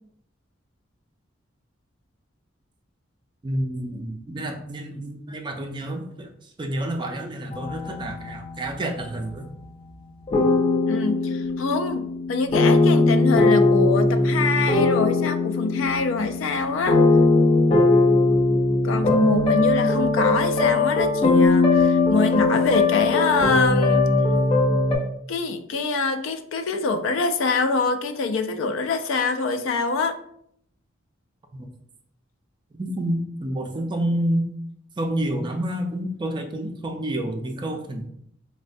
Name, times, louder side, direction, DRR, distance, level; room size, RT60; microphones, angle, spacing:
voice 1, 3.4-9.5 31.5-31.7 32.7-34.5 35.0-38.1, right 1 dB, 25° right, 4 dB, 0.3 m, -29 dB
sound 1, 7.5-9.1 10.3-25.0, left 3 dB, 30° left, 0.5 m, -20 dB
voice 2, 10.9-17.0 18.8-24.1 25.3-30.2, left 4 dB, 80° left, 9 dB, 0.3 m, -25 dB
4.0 x 2.1 x 2.6 m, 0.70 s
head